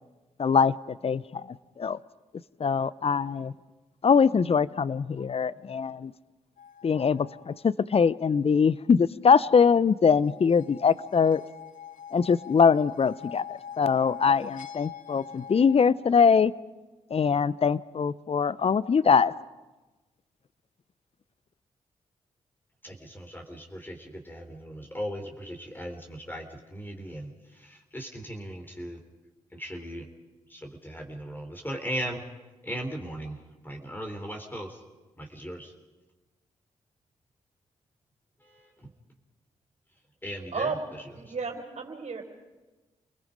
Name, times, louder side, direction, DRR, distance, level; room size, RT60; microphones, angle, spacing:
voice 1, 0.4-2.0 2.6-3.5 4.0-6.1 6.8-11.4 12.1-16.5 17.1-19.3, left 6 dB, 45° left, 20 dB, 0.7 m, -23 dB
sound 1, 6.6-7.6 10.1-15.9, left 8 dB, 70° left, 1.0 m, -44 dB
voice 2, 22.8-29.0 29.5-30.1 30.5-32.2 32.6-33.4 33.6-34.8 35.2-35.7 38.4-38.9 40.2-41.4, equal, 15° left, 3 dB, 3.6 m, -38 dB
voice 3, 41.2-42.2, right 5 dB, 55° right, 3 dB, 4.1 m, -32 dB
29.5 x 20.0 x 5.3 m, 1.2 s
hypercardioid pair, 40°, 14 cm